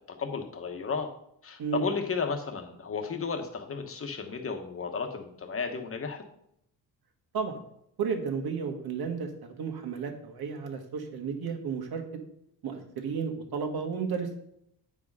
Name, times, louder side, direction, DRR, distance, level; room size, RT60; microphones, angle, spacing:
voice 1, 0.1-1.1 1.4-6.2, left 5 dB, 35° left, 5 dB, 1.2 m, -33 dB
voice 2, 8.0-12.0 12.6-14.4, right 6 dB, 65° right, 4 dB, 1.6 m, -33 dB
8.8 x 4.9 x 5.4 m, 0.75 s
cardioid pair, 130°, 40 cm